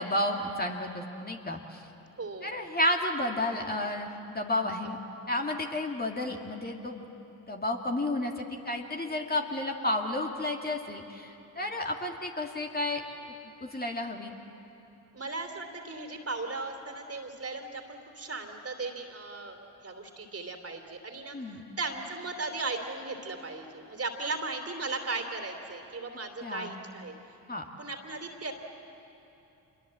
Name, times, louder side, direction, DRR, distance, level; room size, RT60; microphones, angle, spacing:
voice 1, 0.0-1.8 2.4-5.0 5.3-7.0 7.5-13.0 13.6-14.3 21.3-21.7 26.4-26.7 27.5-27.6, left 1 dB, 25° left, 1 dB, 2.4 m, -31 dB
voice 2, 2.2-2.5 15.1-27.1 27.8-28.5, right 3 dB, 35° right, 5 dB, 3.2 m, -37 dB
26.0 x 22.0 x 7.7 m, 2.9 s
hypercardioid pair, 45°, 40 cm